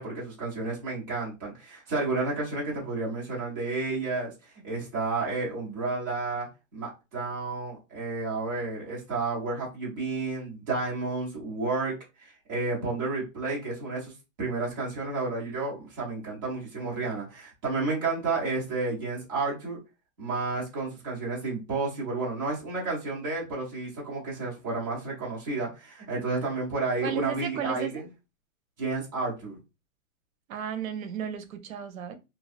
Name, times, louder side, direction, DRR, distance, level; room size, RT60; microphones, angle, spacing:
voice 1, 0.0-6.5 6.7-11.9 12.2-14.1 14.4-19.8 20.2-28.1 28.8-29.6, right 3 dB, 15° right, -5 dB, 0.6 m, -31 dB
voice 2, 27.0-28.0 30.5-32.2, right 8 dB, 80° right, 9 dB, 0.6 m, -34 dB
2.7 x 2.2 x 2.4 m, 0.26 s
hypercardioid pair, 175°, 40 cm